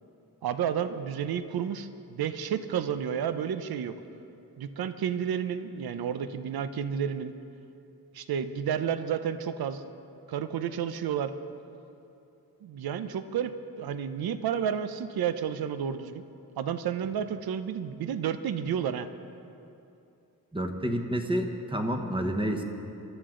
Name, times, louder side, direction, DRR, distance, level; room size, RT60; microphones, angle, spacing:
voice 1, 0.4-4.0 4.6-7.4 8.1-9.8 10.3-11.3 12.6-16.2 16.6-19.1, right 8 dB, 80° right, 11 dB, 0.7 m, -31 dB
voice 2, 20.5-22.6, equal, 15° right, 4 dB, 1.0 m, -29 dB
22.5 x 13.0 x 3.8 m, 2.8 s
wide cardioid pair, 175°, 37 cm